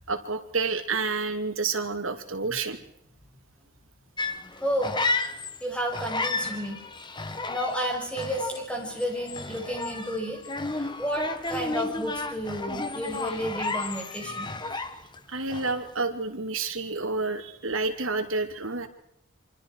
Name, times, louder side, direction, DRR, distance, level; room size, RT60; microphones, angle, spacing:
voice 1, 0.1-2.8 14.7-14.8 15.3-18.9, right 3 dB, 70° right, 5 dB, 2.8 m, -29 dB
sound 1, 4.2-5.6 5.9-15.2 15.5-15.9, left 3 dB, 20° left, 1.1 m, -32 dB
voice 2, 4.6-4.9 5.6-6.8 7.5-10.4 10.7-14.5, equal, 5° left, 1 dB, 6.3 m, -31 dB
27.5 x 25.5 x 4.8 m, 0.71 s
head